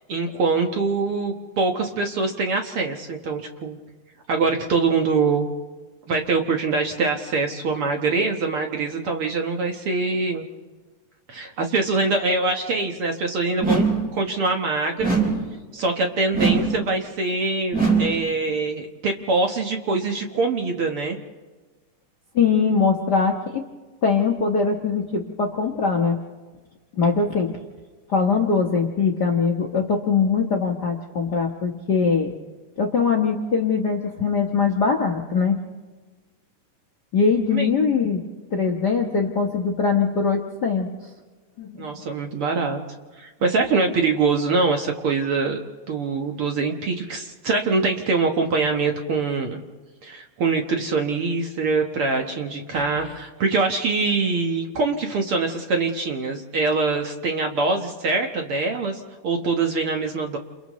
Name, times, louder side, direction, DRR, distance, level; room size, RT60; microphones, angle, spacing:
voice 1, 0.1-3.8 4.3-5.5 6.1-10.5 11.3-15.2 15.7-21.2 37.5-37.7 41.8-42.8 43.2-45.6 45.9-49.6 50.0-60.4, right 3 dB, 55° right, 3 dB, 1.8 m, -24 dB
sound 1, 13.6-14.2 15.0-15.6 16.3-16.9 17.7-18.3, right 4 dB, 5° right, 4.4 m, -21 dB
voice 2, 22.3-23.6 24.0-26.2 27.0-27.5 28.1-32.3 32.8-35.6 37.1-38.2 38.5-40.9 41.6-41.8 52.7-52.8, left 5 dB, 50° left, 2 dB, 1.2 m, -22 dB
30.0 x 29.0 x 3.1 m, 1.3 s
omnidirectional pair, 3.6 m